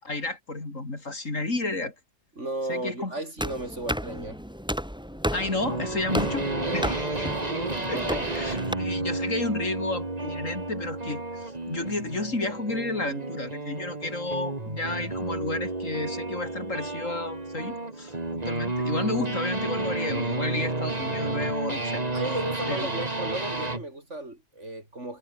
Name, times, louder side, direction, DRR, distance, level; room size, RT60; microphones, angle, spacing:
voice 1, 0.0-1.9 2.7-3.1 5.3-6.5 6.7-7.1 7.9-22.0 22.7-22.9, left 2 dB, 85° left, 4.9 m, -32 dB
voice 2, 2.4-4.4 6.6-7.0 7.8-8.3 8.8-9.1 22.1-25.2, right 1 dB, 65° right, 6.8 m, -34 dB
sound 1, 3.4-8.7, equal, 5° right, 4.5 m, -32 dB
sound 2, 5.6-23.9, right 2 dB, 30° right, 2.7 m, -31 dB
omnidirectional pair, 1.3 m